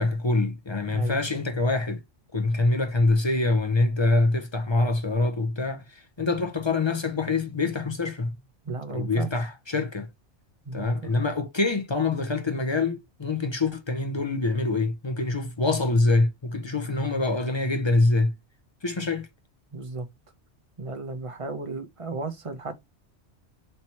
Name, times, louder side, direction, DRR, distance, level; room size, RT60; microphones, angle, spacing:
voice 1, 0.0-2.0 2.3-8.3 8.9-10.1 10.7-18.3 18.8-19.3, left 2 dB, 30° left, 0.6 m, -25 dB
voice 2, 8.7-9.3 10.7-11.1 19.7-20.1 20.8-22.7, right 3 dB, 30° right, 0.8 m, -34 dB
3.3 x 3.0 x 4.2 m
omnidirectional pair, 1.2 m